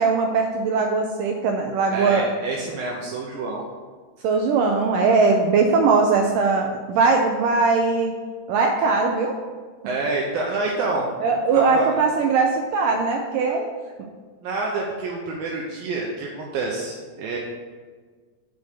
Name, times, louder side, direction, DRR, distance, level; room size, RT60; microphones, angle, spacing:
voice 1, 0.0-2.3 4.2-8.1 8.5-9.4 11.2-13.7, right 4 dB, 90° right, 2 dB, 1.9 m, -20 dB
voice 2, 1.9-3.6 9.9-11.1 11.5-11.9 14.4-17.4, right 3 dB, 75° right, -2 dB, 2.5 m, -27 dB
7.7 x 5.2 x 6.7 m, 1.5 s
omnidirectional pair, 4.5 m